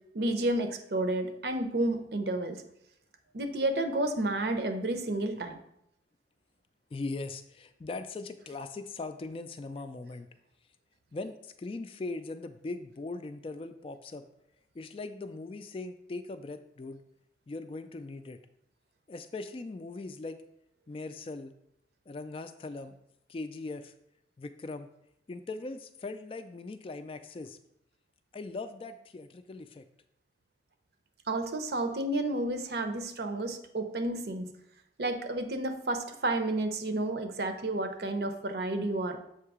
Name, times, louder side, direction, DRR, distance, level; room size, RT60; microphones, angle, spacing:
voice 1, 0.1-2.6 3.3-5.6 31.3-34.5 35.0-39.2, right 2 dB, 60° right, 7 dB, 0.7 m, -31 dB
voice 2, 6.9-10.3 11.1-14.3 14.8-17.0 17.5-18.4 19.1-20.4 20.9-21.5 22.1-23.0 23.3-23.9 24.4-24.9 25.3-27.6 28.3-29.8, left 3 dB, 30° left, 9 dB, 0.3 m, -40 dB
7.2 x 2.8 x 4.8 m, 0.78 s
head